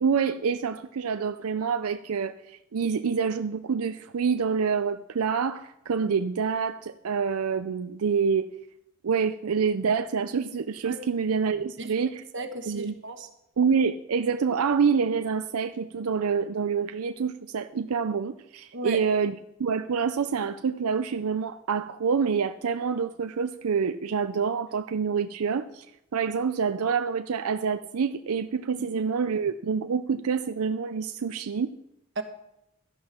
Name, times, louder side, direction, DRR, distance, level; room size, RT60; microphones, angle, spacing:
voice 1, 0.0-8.5 9.0-12.2 12.7-12.9 13.6-25.9 26.1-31.7, right 6 dB, 85° right, 9 dB, 0.5 m, -27 dB
voice 2, 12.3-13.3 18.7-19.0 28.9-29.0 32.2-32.3, right 2 dB, 55° right, 6 dB, 1.1 m, -34 dB
13.5 x 11.5 x 4.3 m, 0.83 s
head